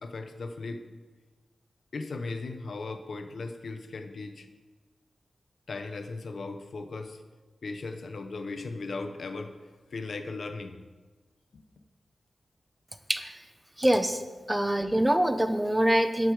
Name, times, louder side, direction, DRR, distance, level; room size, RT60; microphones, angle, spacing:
voice 1, 0.0-0.8 1.9-4.5 5.7-7.2 7.6-9.5 9.9-10.8 11.5-11.6, left 3 dB, 65° left, 7 dB, 1.0 m, -37 dB
voice 2, 13.8-14.2 14.5-16.3, right 1 dB, 10° right, 9 dB, 0.8 m, -24 dB
11.5 x 10.5 x 4.9 m, 1.3 s
wide cardioid pair, 120°, 0 cm